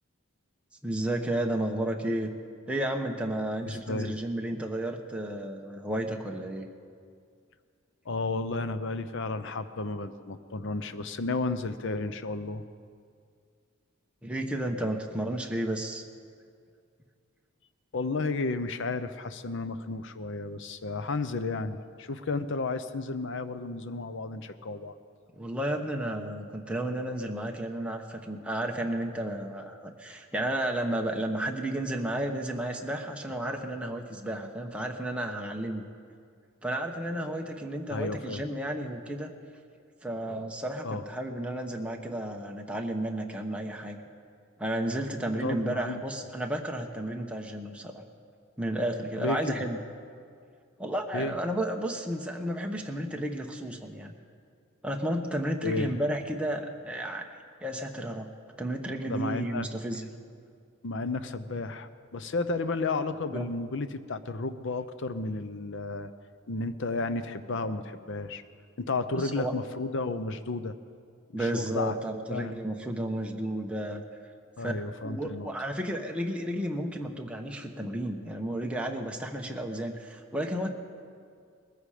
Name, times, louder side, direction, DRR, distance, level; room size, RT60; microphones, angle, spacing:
voice 1, 0.8-2.3 2.7-6.7 14.2-16.1 25.4-35.8 36.6-39.3 40.0-44.0 44.6-48.0 48.6-49.8 50.8-54.1 54.8-57.3 57.6-58.3 58.6-60.1 63.3-63.5 69.1-69.5 71.3-74.0 74.6-74.7 75.0-80.7, right 1 dB, 5° right, 1 dB, 1.0 m, -32 dB
voice 2, 3.7-4.2 8.1-12.6 17.9-25.0 37.9-38.5 40.8-41.0 45.4-46.0 49.2-49.6 51.1-51.4 55.6-56.0 59.0-59.7 60.8-66.1 66.5-68.4 68.8-70.8 71.3-71.9 72.3-72.5 74.6-75.5, left 3 dB, 60° left, 11 dB, 0.7 m, -32 dB
20.0 x 14.5 x 5.0 m, 2.3 s
head